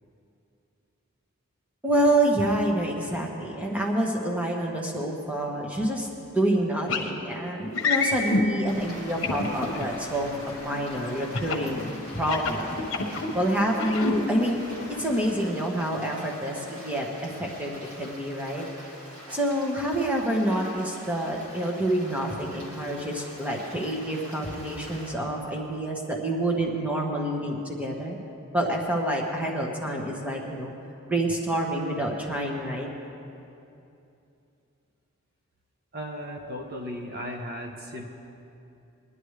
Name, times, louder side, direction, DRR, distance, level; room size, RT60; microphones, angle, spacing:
voice 1, 1.8-6.1 6.3-11.9 12.2-12.9 13.3-14.7 15.0-17.1 17.4-18.6 19.3-28.2 28.5-30.7 31.1-32.9, right 1 dB, 5° right, -1 dB, 1.3 m, -27 dB
sound 1, 6.9-7.1 7.7-8.4 9.2-9.8 11.3-11.7 12.2-13.3 13.7-14.2, left 3 dB, 60° left, 1.2 m, -26 dB
sound 2, 8.6-15.5, left 1 dB, 15° left, 1.7 m, -42 dB
Stream, 8.7-25.1, equal, 70° right, 2.9 m, -45 dB
voice 2, 35.9-38.1, equal, 45° right, 1 dB, 0.9 m, -36 dB
21.5 x 11.0 x 3.3 m, 2.7 s
head